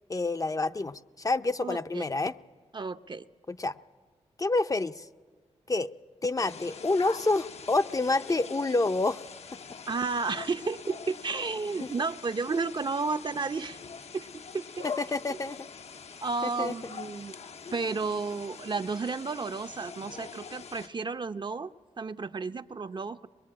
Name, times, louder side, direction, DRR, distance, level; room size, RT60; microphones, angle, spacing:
voice 1, 0.1-2.4 3.5-3.8 4.4-5.1 5.7-5.9 6.2-9.2 9.5-9.6 11.8-11.9 14.8-15.6 16.4-16.7, left 2 dB, 30° left, 10 dB, 0.7 m, -28 dB
voice 2, 1.6-2.1 2.7-3.2 9.9-13.8 14.1-14.8 15.3-15.4 16.2-17.3 17.7-23.3, right 4 dB, 40° right, 10 dB, 0.8 m, -32 dB
sound 1, 6.4-20.9, left 6 dB, 65° left, 0.9 m, -44 dB
22.5 x 21.5 x 8.6 m, 1.4 s
cardioid pair, 75°, 12 cm